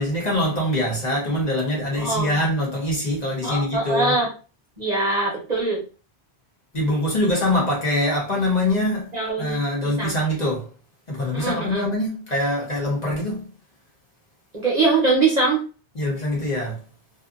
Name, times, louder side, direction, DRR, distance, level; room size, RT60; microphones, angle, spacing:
voice 1, 0.0-4.2 6.7-10.7 11.1-13.5 16.0-16.8, left 1 dB, 40° left, 0.9 m, -24 dB
voice 2, 2.0-2.4 3.4-4.3 4.8-5.8 9.1-10.2 11.3-11.9 14.5-15.6, right 3 dB, 40° right, 0.8 m, -23 dB
2.6 x 2.5 x 2.4 m
omnidirectional pair, 1.1 m